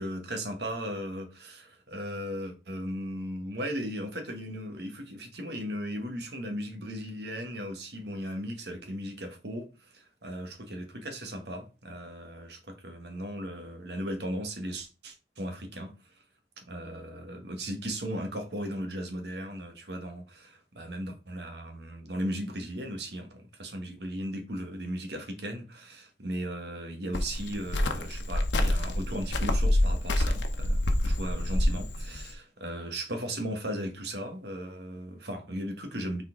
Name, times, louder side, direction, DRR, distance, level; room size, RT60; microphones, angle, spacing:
voice 1, 0.0-15.9 16.6-36.2, equal, 65° right, 1.5 m, -37 dB
Cricket, 27.1-32.3, left 1 dB, 85° left, 0.9 m, -27 dB
6.0 x 4.3 x 3.8 m
head